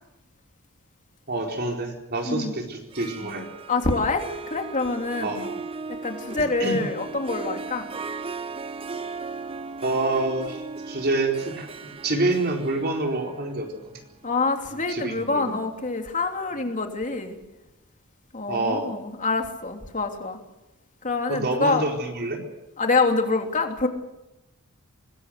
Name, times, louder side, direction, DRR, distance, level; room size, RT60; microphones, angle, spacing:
voice 1, 1.3-3.5 5.2-5.6 6.4-6.8 9.8-11.7 12.0-14.0 14.9-15.6 16.6-16.7 18.5-18.9 21.3-22.4, right 2 dB, 45° right, 2 dB, 4.3 m, -27 dB
Harp, 2.8-15.7, right 4 dB, 25° right, 1.0 m, -37 dB
voice 2, 3.7-5.3 6.0-7.9 14.2-17.4 18.3-20.4 21.0-21.9 22.8-23.9, left 3 dB, 35° left, 4 dB, 3.1 m, -26 dB
25.0 x 21.0 x 6.6 m, 0.96 s
head